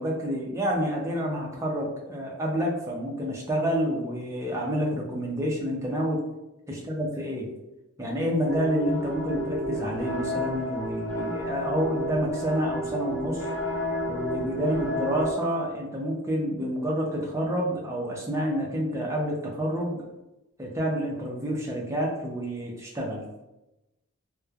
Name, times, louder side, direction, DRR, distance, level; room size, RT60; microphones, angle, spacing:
voice 1, 0.0-6.2 6.7-7.5 8.0-13.4 14.1-20.1 20.6-23.2, equal, 15° right, -2 dB, 0.4 m, -28 dB
sound 1, 8.5-15.3, equal, 35° left, 0.6 m, -31 dB
3.0 x 2.0 x 2.3 m, 0.95 s
head